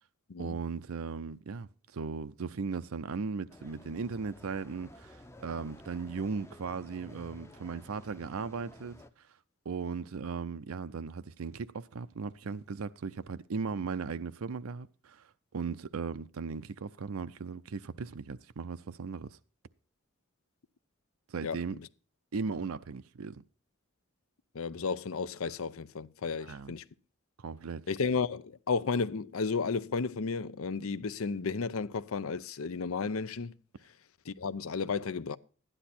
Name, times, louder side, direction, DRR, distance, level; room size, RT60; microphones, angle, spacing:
voice 1, 0.4-9.0 9.7-15.3 15.5-19.4 21.3-21.8 22.3-23.4 26.4-26.7 27.4-27.8, right 5 dB, 80° right, 0.5 m, -37 dB
sound 1, 3.5-9.1, left 1 dB, 10° left, 0.6 m, -53 dB
voice 2, 21.4-21.8 24.5-26.8 27.9-33.5 34.3-35.4, left 5 dB, 80° left, 0.6 m, -33 dB
12.5 x 10.0 x 4.3 m
head